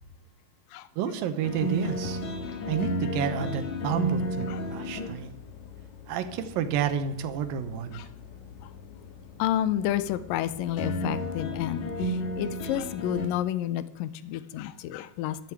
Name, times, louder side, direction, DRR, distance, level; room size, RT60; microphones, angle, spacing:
voice 1, 1.0-2.2 2.7-5.3 6.1-8.0, right 8 dB, 70° right, 10 dB, 2.5 m, -30 dB
sound 1, 1.4-13.3, left 1 dB, 60° left, 2.5 m, -34 dB
voice 2, 9.4-15.4, left 12 dB, 85° left, 14 dB, 1.9 m, -30 dB
13.5 x 12.5 x 4.7 m, 0.82 s
omnidirectional pair, 4.6 m